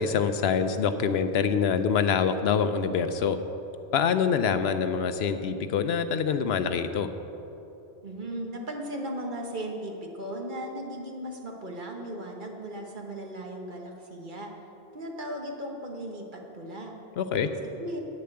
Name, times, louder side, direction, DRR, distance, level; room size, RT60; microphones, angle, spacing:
voice 1, 0.0-3.4 3.9-7.1 17.2-17.5, left 6 dB, 70° left, 10 dB, 0.8 m, -25 dB
voice 2, 8.0-14.5 14.9-16.9 17.3-17.5 17.8-18.0, right 1 dB, 50° right, 1 dB, 1.3 m, -37 dB
9.8 x 6.8 x 7.7 m, 3.0 s
omnidirectional pair, 1.1 m